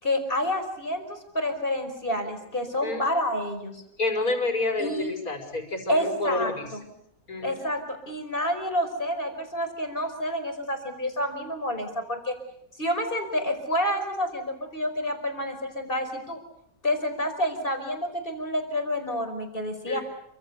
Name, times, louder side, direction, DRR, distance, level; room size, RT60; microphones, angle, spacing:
voice 1, 0.0-3.8 4.8-5.1 5.9-6.9 7.4-12.4 12.8-16.4 16.8-20.0, left 1 dB, 30° left, 6 dB, 5.2 m, -29 dB
voice 2, 4.0-6.7 7.3-7.6 19.9-20.0, left 2 dB, 55° left, 4 dB, 5.8 m, -28 dB
28.5 x 26.0 x 6.8 m, 0.76 s
omnidirectional pair, 1.8 m